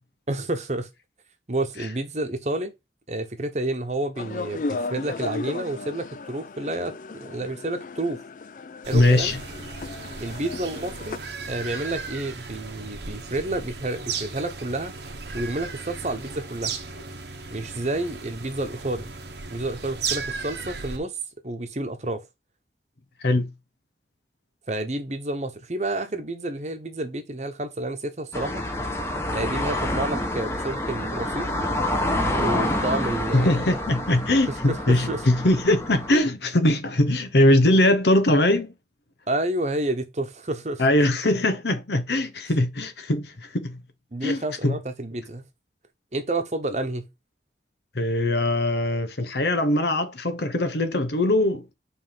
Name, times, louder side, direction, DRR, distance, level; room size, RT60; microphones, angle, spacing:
voice 1, 0.3-0.9 1.5-2.7 3.1-6.9 7.2-8.2 8.9-9.4 10.2-11.2 11.4-15.0 15.3-16.7 17.5-19.1 19.5-21.2 21.4-22.2 24.7-28.7 29.3-31.5 32.3-33.6 34.5-35.2 39.3-40.8 44.1-45.4 46.1-47.1, right 2 dB, 40° right, 1.0 m, -29 dB
sound 1, 4.1-11.2, left 3 dB, 45° left, 0.4 m, -35 dB
sound 2, 8.8-21.0, right 5 dB, 80° right, 1.0 m, -36 dB
voice 2, 8.9-9.4 23.2-23.5 33.3-38.7 40.8-43.8 44.2-44.8 47.9-51.7, left 1 dB, 75° left, 1.0 m, -21 dB
sound 3, 28.3-36.2, left 1 dB, 15° left, 1.1 m, -28 dB
5.3 x 3.4 x 5.6 m
head